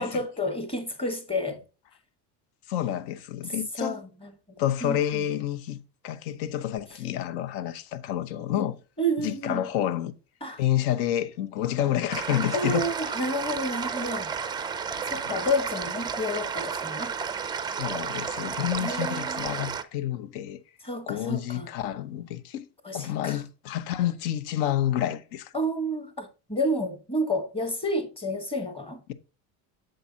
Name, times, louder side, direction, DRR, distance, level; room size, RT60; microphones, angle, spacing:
voice 1, 0.0-1.6 3.8-4.0 4.8-5.0 8.6-8.7 9.0-9.6 10.4-10.6 12.5-14.3 15.1-17.1 18.8-19.5 20.8-21.7 22.8-23.4 25.5-29.1, equal, 10° left, 1.2 m, -30 dB
voice 2, 2.7-4.0 4.6-5.8 6.0-8.8 9.2-10.1 10.6-12.9 15.3-15.4 17.8-20.6 21.1-22.7 22.9-25.5, left 11 dB, 70° left, 1.0 m, -29 dB
sound 1, 12.1-19.8, right 6 dB, 10° right, 0.4 m, -32 dB
7.9 x 6.7 x 2.8 m
supercardioid pair, 130°, 47 cm